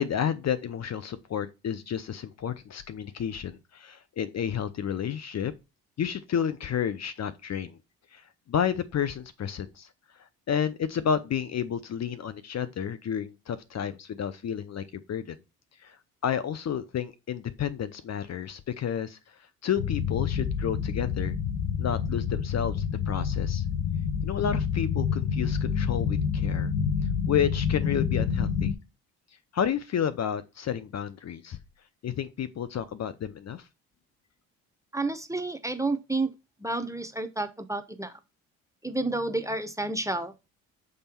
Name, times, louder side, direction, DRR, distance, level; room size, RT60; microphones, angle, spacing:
voice 1, 0.0-5.5 6.0-7.8 8.1-9.9 10.2-15.4 15.8-16.0 16.2-19.2 19.6-21.3 21.8-23.6 24.2-26.7 27.3-28.7 29.5-31.6 32.0-33.7, left 8 dB, 40° left, 0.7 m, -31 dB
sound 1, 19.8-28.7, left 7 dB, 80° left, 0.9 m, -28 dB
voice 2, 34.9-36.3 36.6-38.1 38.8-40.3, right 2 dB, 10° right, 0.8 m, -30 dB
6.5 x 3.6 x 4.4 m
hypercardioid pair, 55°, 41 cm